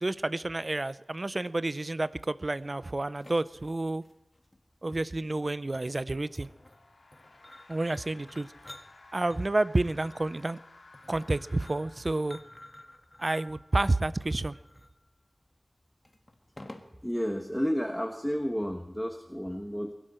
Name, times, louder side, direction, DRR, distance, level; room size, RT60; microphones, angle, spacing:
voice 1, 0.0-4.0 4.8-6.5 7.7-8.5 9.1-10.6 11.1-12.4 13.2-14.6, right 2 dB, 45° right, 16 dB, 0.6 m, -30 dB
sound 1, 2.4-17.1, left 1 dB, 30° left, 1.6 m, -53 dB
sound 2, 6.0-12.9, left 2 dB, 90° left, 2.4 m, -56 dB
voice 2, 17.0-19.9, equal, 5° left, 4 dB, 1.3 m, -31 dB
22.5 x 12.5 x 4.4 m, 1.0 s
wide cardioid pair, 50°, 0 cm